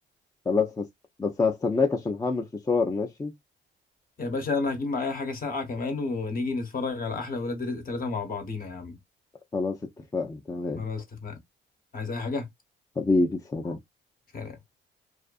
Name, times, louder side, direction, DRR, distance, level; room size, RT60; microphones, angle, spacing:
voice 1, 0.5-0.8 1.2-3.3 9.5-9.8 10.1-10.8 13.0-13.8, left 3 dB, 15° left, 0.5 m, -26 dB
voice 2, 4.2-9.0 10.7-11.4 11.9-12.5 13.7-13.8 14.3-14.6, left 3 dB, 45° left, 1.1 m, -31 dB
2.5 x 2.4 x 2.3 m
cardioid pair, 90°, 20 cm